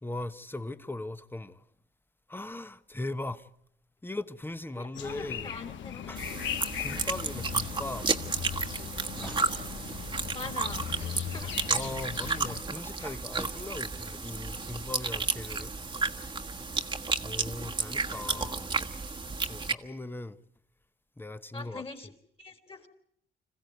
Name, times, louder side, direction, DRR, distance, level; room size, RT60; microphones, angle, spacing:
voice 1, 0.0-1.7 2.3-3.5 4.0-5.5 6.1-6.2 6.7-8.1 8.5-8.6 9.2-9.5 11.7-15.7 17.2-18.7 19.5-20.4 21.2-21.8, left 2 dB, 10° left, 1.1 m, -39 dB
voice 2, 4.7-6.1 10.3-11.5 12.3-12.4 13.0-13.2 21.5-22.1 22.4-22.9, left 3 dB, 25° left, 3.5 m, -43 dB
sound 1, 4.9-12.6, left 9 dB, 70° left, 1.1 m, -38 dB
sound 2, 6.2-19.7, right 4 dB, 25° right, 1.4 m, -32 dB
26.0 x 15.5 x 9.4 m
cardioid pair, 90°, 20 cm